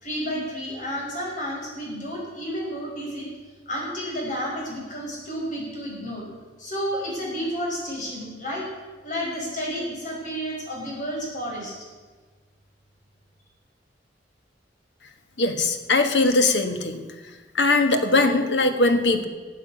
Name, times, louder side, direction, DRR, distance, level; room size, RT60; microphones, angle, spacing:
voice 1, 0.0-3.3 3.7-6.2 6.6-8.6 9.0-11.7, equal, 45° left, -3 dB, 5.4 m, -31 dB
voice 2, 15.4-17.0 17.5-19.2, left 2 dB, 80° left, 7 dB, 1.5 m, -20 dB
15.0 x 8.3 x 8.5 m, 1.4 s
head